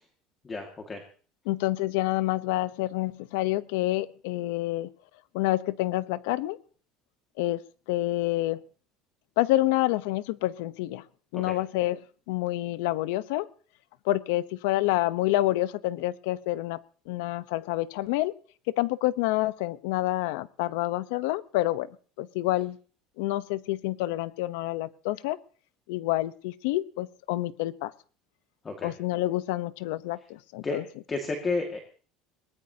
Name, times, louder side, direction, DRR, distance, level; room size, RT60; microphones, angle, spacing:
voice 1, 0.4-1.0 11.3-11.5 28.6-28.9 30.6-30.8 31.1-31.8, left 3 dB, 20° left, 3 dB, 2.0 m, -31 dB
voice 2, 1.5-4.9 5.3-6.6 7.4-7.6 7.9-8.6 9.4-11.0 11.3-12.0 12.3-13.5 14.0-18.3 18.7-21.9 22.2-22.8 23.2-25.4 25.9-27.9 28.8-30.8, left 16 dB, 85° left, 16 dB, 0.8 m, -28 dB
22.0 x 19.0 x 2.9 m, 0.42 s
cardioid pair, 160°, 0 cm